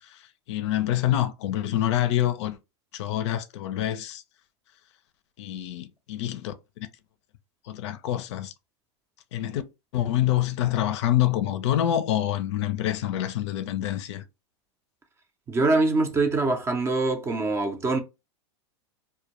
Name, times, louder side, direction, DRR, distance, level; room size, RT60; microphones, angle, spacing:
voice 1, 0.0-2.6 2.9-4.2 5.4-6.9 7.6-8.5 9.3-9.6 9.9-14.2, left 12 dB, 70° left, 0.4 m, -26 dB
voice 2, 15.5-18.0, right 3 dB, 15° right, 0.4 m, -24 dB
2.1 x 2.1 x 2.8 m
hypercardioid pair, 125°, 15 cm